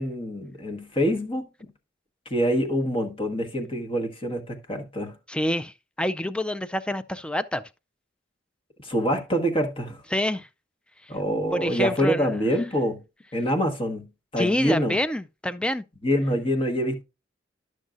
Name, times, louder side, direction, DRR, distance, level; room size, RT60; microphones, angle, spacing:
voice 1, 0.0-1.7 2.2-5.2 8.8-10.0 11.1-13.0 13.3-15.0 16.0-17.0, equal, 30° left, 1.3 m, -26 dB
voice 2, 5.3-7.6 10.1-10.5 11.5-12.3 14.4-15.8, left 1 dB, 5° left, 0.3 m, -27 dB
11.5 x 6.3 x 2.5 m
head